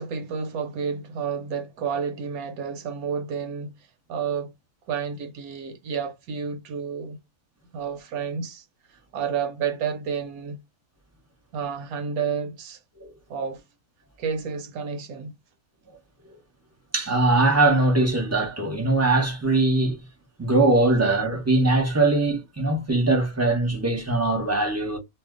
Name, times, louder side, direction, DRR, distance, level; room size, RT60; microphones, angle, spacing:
voice 1, 0.0-3.7 4.1-4.5 4.9-7.2 7.7-8.6 8.9-10.6 11.5-12.8 13.3-13.6 14.2-15.3, right 6 dB, 70° right, 1.0 m, -30 dB
voice 2, 16.9-20.0 20.4-25.0, right 2 dB, 15° right, 0.5 m, -21 dB
2.8 x 2.1 x 3.6 m
omnidirectional pair, 1.7 m